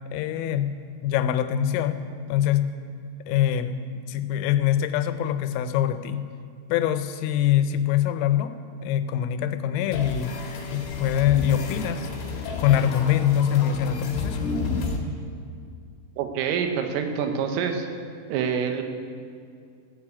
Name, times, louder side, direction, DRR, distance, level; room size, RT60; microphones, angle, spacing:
voice 1, 0.1-0.7 1.0-2.0 2.3-2.7 3.3-3.8 4.1-6.3 6.7-8.5 8.8-10.3 10.7-12.1 12.4-14.6, left 10 dB, 90° left, 10 dB, 3.4 m, -24 dB
sound 1, 9.9-15.0, left 4 dB, 60° left, 2.9 m, -31 dB
voice 2, 16.2-17.9 18.3-18.8, right 7 dB, 80° right, 5 dB, 3.6 m, -26 dB
14.5 x 7.6 x 8.5 m, 2.3 s
omnidirectional pair, 5.8 m